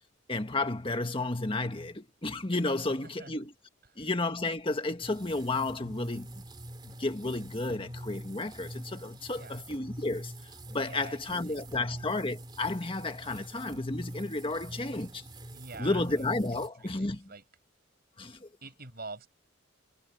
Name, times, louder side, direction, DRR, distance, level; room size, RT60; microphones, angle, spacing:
voice 1, 0.3-3.5 4.0-6.4 6.8-10.3 10.7-15.2 15.8-17.3 18.2-18.5, left 2 dB, 25° left, 1.6 m, -32 dB
voice 2, 3.0-3.4 3.9-4.1 9.3-9.6 10.8-11.2 11.5-11.9 15.5-16.3 16.5-17.4 18.6-19.3, right 3 dB, 50° right, 6.2 m, -46 dB
sound 1, 5.0-16.7, right 1 dB, 20° right, 2.6 m, -45 dB
head